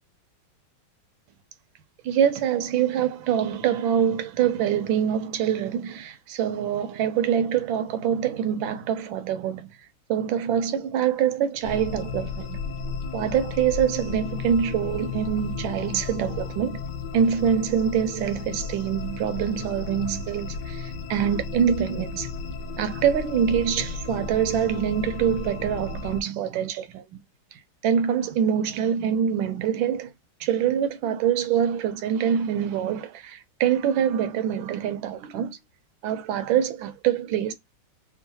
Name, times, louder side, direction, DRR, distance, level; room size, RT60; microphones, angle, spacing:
voice 1, 2.0-9.7 10.1-12.6 13.1-16.8 17.1-22.3 22.8-27.2 27.5-30.1 30.4-35.6 36.0-37.5, right 8 dB, 80° right, 1.3 m, -25 dB
sound 1, 11.6-26.2, left 5 dB, 70° left, 1.2 m, -34 dB
3.6 x 2.1 x 2.7 m
omnidirectional pair, 2.1 m